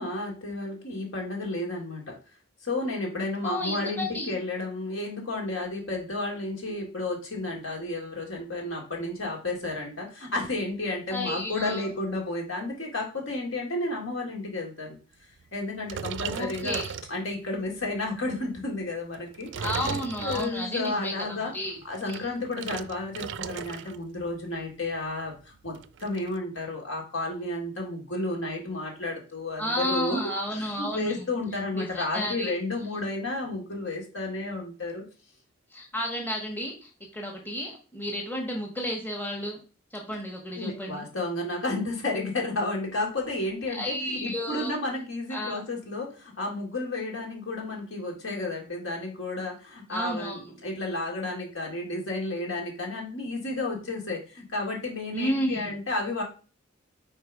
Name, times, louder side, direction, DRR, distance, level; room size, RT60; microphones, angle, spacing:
voice 1, 0.0-2.2 2.6-15.0 15.5-16.8 17.1-21.5 21.8-25.8 26.0-30.2 30.5-35.0 40.1-40.2 40.6-56.2, left 2 dB, 75° left, -1 dB, 2.1 m, -32 dB
voice 2, 3.4-4.3 11.1-11.8 16.3-16.9 19.6-21.8 22.1-22.3 29.6-31.2 31.7-32.5 35.7-39.6 39.9-41.0 43.7-44.7 45.3-45.6 49.9-50.6 55.1-55.7, equal, 10° left, -1 dB, 1.1 m, -32 dB
sound 1, 15.8-17.6 18.1-18.4 19.1-20.9 21.8-24.0 24.3-24.6 24.9-25.0 25.2-26.3, right 7 dB, 60° right, 0.3 m, -36 dB
4.7 x 4.5 x 4.9 m, 0.36 s
head